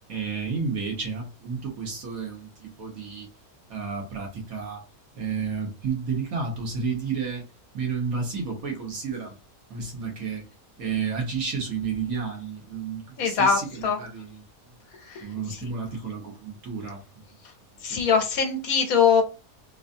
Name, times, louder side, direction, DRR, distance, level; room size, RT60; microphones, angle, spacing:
voice 1, 0.1-3.3 3.7-4.8 5.1-7.4 7.7-9.4 9.7-10.4 10.8-14.5 15.2-17.0 17.9-18.2, right 5 dB, 65° right, 1.7 m, -31 dB
voice 2, 13.2-14.0 15.1-15.2 17.8-19.2, left 6 dB, 70° left, 1.2 m, -22 dB
3.9 x 2.6 x 2.6 m
omnidirectional pair, 1.6 m